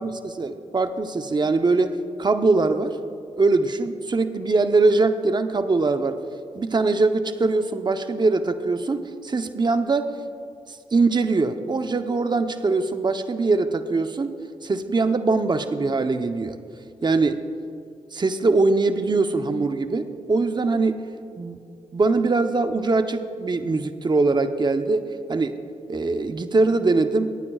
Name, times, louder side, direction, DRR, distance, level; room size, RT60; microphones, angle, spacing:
voice 1, 0.0-3.0 3.4-6.2 6.5-10.1 10.7-16.6 17.0-17.4 18.1-21.1 21.4-21.6 21.9-25.6 25.9-27.3, right 3 dB, 35° right, 8 dB, 0.8 m, -22 dB
25.5 x 9.5 x 2.4 m, 2.4 s
supercardioid pair, 45°, 13 cm